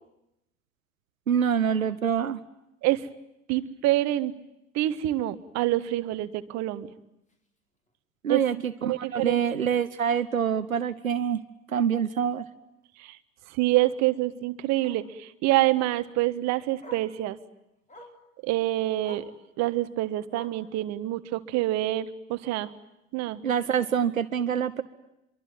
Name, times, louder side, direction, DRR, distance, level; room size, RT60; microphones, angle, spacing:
voice 1, 1.3-2.4 8.2-11.4 11.7-12.4 23.4-24.8, right 8 dB, 80° right, 12 dB, 1.0 m, -26 dB
voice 2, 3.5-4.3 4.7-6.9 8.3-8.4 8.8-9.4 13.0-13.2 13.5-17.4 18.4-19.2 19.6-22.7 23.1-23.4, right 16 dB, 40° right, 12 dB, 1.5 m, -26 dB
Bark, 7.3-7.5 7.9-8.0 8.4-8.5 8.7-8.8 10.2-10.3 12.8-12.9 13.7-14.0 14.8-15.1 16.3-16.4 16.8-17.1 17.9-18.2 19.0-19.4 20.3-20.7 21.7-21.8, equal, 20° left, 4.4 m, -47 dB
25.5 x 24.0 x 9.1 m, 0.87 s
figure-of-eight pair, 75°, 40 cm